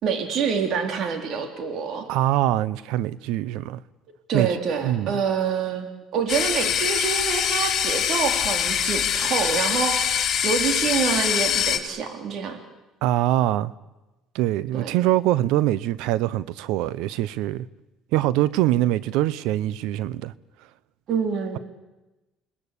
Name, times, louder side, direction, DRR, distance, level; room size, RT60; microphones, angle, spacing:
voice 1, 0.0-2.1 4.3-12.6 14.7-15.0 21.1-21.6, right 6 dB, 60° right, 3.6 m, -26 dB
voice 2, 2.1-3.8 4.3-4.5 4.8-5.1 13.0-13.7 14.3-17.7 18.1-20.3, right 14 dB, 80° right, 0.8 m, -23 dB
sound 1, 6.3-11.8, left 8 dB, 45° left, 3.1 m, -24 dB
28.0 x 19.5 x 8.4 m
supercardioid pair, 100°, 0 cm